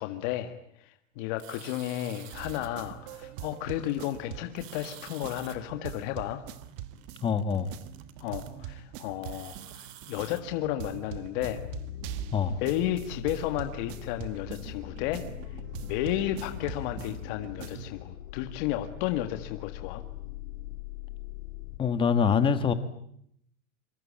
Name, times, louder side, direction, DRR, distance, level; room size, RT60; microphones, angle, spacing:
voice 1, 0.0-6.4 8.2-11.6 12.6-15.2 15.5-20.0, left 13 dB, 40° left, 7 dB, 1.8 m, -33 dB
sound 1, 1.4-2.7 3.5-4.2 4.5-5.6 6.5-8.5 9.1-10.4, right 11 dB, 80° right, 3.4 m, -50 dB
sound 2, 2.3-17.9, right 11 dB, 35° right, 1.4 m, -43 dB
voice 2, 7.2-7.7 12.3-12.6 21.8-22.7, left 6 dB, 15° left, 11 dB, 1.3 m, -24 dB
sound 3, 11.4-21.8, left 14 dB, 80° left, 3.0 m, -42 dB
26.5 x 24.5 x 8.8 m, 0.71 s
supercardioid pair, 175°, 39 cm